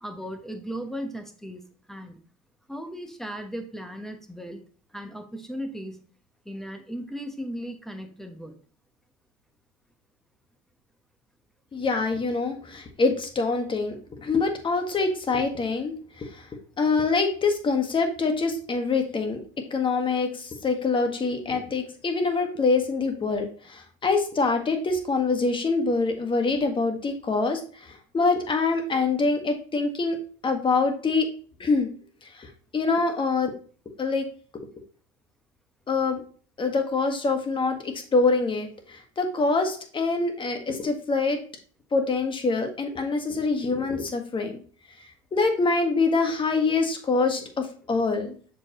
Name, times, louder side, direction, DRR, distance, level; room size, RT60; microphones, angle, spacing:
voice 1, 0.0-2.2 2.7-4.6 4.9-6.1 6.4-8.6, equal, ahead, 5 dB, 1.1 m, -37 dB
voice 2, 11.7-16.5 16.8-19.4 19.7-30.2 30.4-31.3 31.6-31.9 32.2-33.5 34.0-34.3 35.9-36.2 36.6-41.4 41.9-44.6 45.3-48.3, left 3 dB, 25° left, 5 dB, 1.6 m, -25 dB
6.9 x 5.0 x 3.0 m, 0.43 s
supercardioid pair, 105°, 19 cm